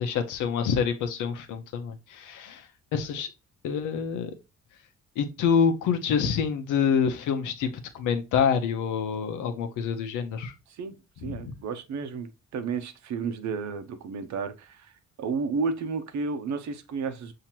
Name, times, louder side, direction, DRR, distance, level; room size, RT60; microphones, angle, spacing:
voice 1, 0.0-2.6 2.9-3.3 3.6-4.3 5.2-10.5 11.2-11.5, left 6 dB, 90° left, 0.8 m, -27 dB
voice 2, 11.2-14.9 15.2-17.3, right 5 dB, 70° right, 0.8 m, -32 dB
5.8 x 2.9 x 2.8 m
cardioid pair, 90°, 30 cm